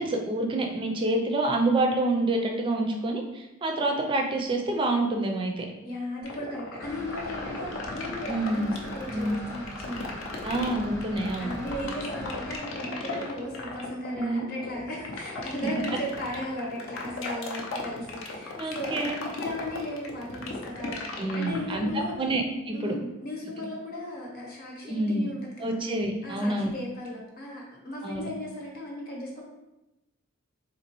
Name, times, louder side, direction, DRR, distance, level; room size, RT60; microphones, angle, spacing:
voice 1, 0.0-5.7 8.3-8.7 9.1-9.4 10.4-11.5 14.2-14.5 18.6-19.2 21.2-21.9 22.2-23.0 24.8-25.3 25.6-26.7 28.0-28.3, right 2 dB, 20° right, 2 dB, 0.4 m, -27 dB
voice 2, 5.8-8.7 8.9-10.5 11.4-22.1 22.7-25.8 26.2-29.4, left 1 dB, 40° left, -3 dB, 0.9 m, -36 dB
sound 1, 6.2-22.2, left 3 dB, 60° left, 0.6 m, -37 dB
sound 2, 6.8-12.6, equal, 15° left, 0.6 m, -41 dB
4.0 x 2.9 x 2.9 m, 0.98 s
head